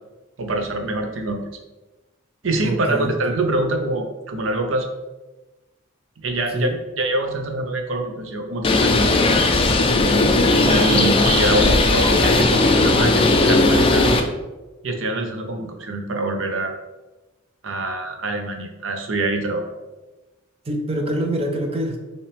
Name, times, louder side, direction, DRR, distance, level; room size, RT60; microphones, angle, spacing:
voice 1, 0.4-1.5 2.4-4.9 6.2-8.9 10.6-14.2 14.8-16.7 17.6-19.6, right 2 dB, 70° right, 4 dB, 0.7 m, -24 dB
voice 2, 2.6-3.4 6.5-6.8 20.7-22.0, right 1 dB, 30° right, 3 dB, 0.6 m, -25 dB
Bird, 8.6-14.2, left 2 dB, 25° left, 0.4 m, -17 dB
5.5 x 2.9 x 3.3 m, 1.1 s
head